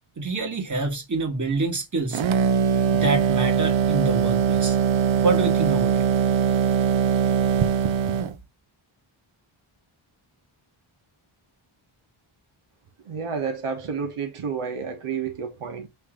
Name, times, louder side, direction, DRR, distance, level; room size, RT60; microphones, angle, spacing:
voice 1, 0.2-2.2 2.9-4.8 5.2-6.0, right 3 dB, 35° right, 1.6 m, -26 dB
sound 1, 2.1-8.4, right 7 dB, 65° right, 0.7 m, -21 dB
voice 2, 13.1-15.9, right 6 dB, 85° right, 1.3 m, -30 dB
7.0 x 2.8 x 5.1 m
wide cardioid pair, 160°, 50 cm